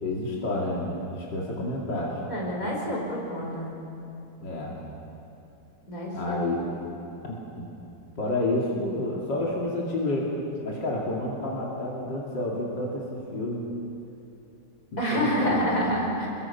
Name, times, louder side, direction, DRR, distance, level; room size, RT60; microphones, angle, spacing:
voice 1, 0.0-2.2 4.4-4.7 6.1-6.7 7.2-7.7 8.2-10.3 10.6-13.6 14.9-15.6, left 1 dB, 90° left, -3 dB, 3.3 m, -29 dB
voice 2, 2.3-3.7 5.9-6.3 15.0-16.3, equal, 50° left, -2 dB, 5.4 m, -28 dB
27.5 x 21.5 x 5.9 m, 2.9 s
omnidirectional pair, 1.9 m